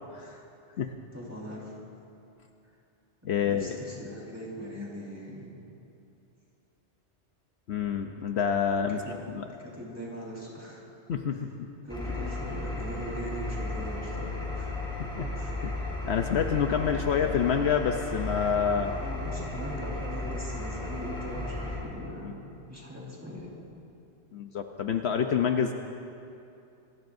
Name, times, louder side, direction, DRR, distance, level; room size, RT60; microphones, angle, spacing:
voice 1, 1.1-1.7 3.4-5.5 8.9-9.2 9.4-10.8 11.3-11.4 11.8-14.7 15.3-15.5 18.8-22.4 22.7-23.5, equal, 15° right, -5 dB, 4.4 m, -40 dB
voice 2, 3.2-3.8 7.7-9.5 11.1-11.5 15.0-15.3 15.6-19.0 24.3-25.7, left 7 dB, 65° left, 5 dB, 1.0 m, -28 dB
Engine, 11.9-21.7, left 2 dB, 5° left, 4.2 m, -35 dB
26.5 x 20.5 x 2.6 m, 2.7 s
omnidirectional pair, 1.2 m